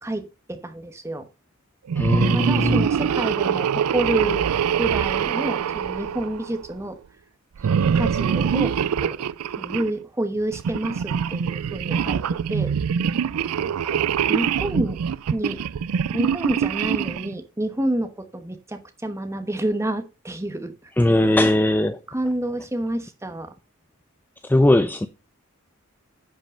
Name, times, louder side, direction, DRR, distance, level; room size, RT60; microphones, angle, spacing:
voice 1, 0.0-1.3 2.3-4.4 4.8-7.0 7.7-8.7 9.0-9.1 9.6-12.2 12.5-12.7 13.9-14.0 14.3-15.0 15.3-15.6 16.1-20.7 22.1-23.5, right 1 dB, 15° right, 1.1 m, -28 dB
sound 1, 1.9-6.7 7.6-9.9 10.5-17.3, right 7 dB, 85° right, 0.4 m, -24 dB
voice 2, 2.0-2.9 21.0-22.0 24.5-25.1, left 1 dB, 10° left, 0.4 m, -19 dB
10.0 x 5.2 x 5.5 m
head